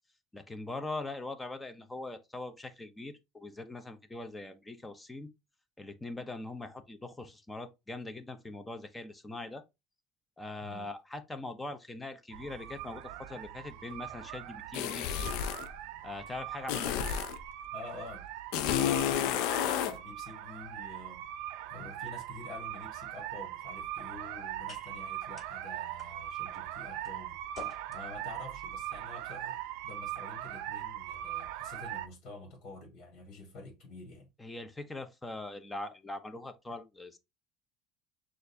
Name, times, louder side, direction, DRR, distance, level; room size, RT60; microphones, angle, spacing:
voice 1, 0.3-5.3 5.8-9.6 10.4-15.3 16.0-17.1 34.4-37.2, left 2 dB, 10° left, 0.6 m, -42 dB
sound 1, 12.3-32.1, right 12 dB, 75° right, 0.5 m, -41 dB
sound 2, 14.7-15.7 16.7-17.4 18.5-20.0, left 10 dB, 70° left, 0.4 m, -30 dB
voice 2, 17.7-18.2 18.7-21.2 21.7-27.4 27.9-34.3, left 3 dB, 50° left, 1.7 m, -48 dB
sound 3, 23.1-31.5, left 4 dB, 30° left, 2.2 m, -56 dB
6.3 x 2.5 x 2.6 m
cardioid pair, 145°, 0 cm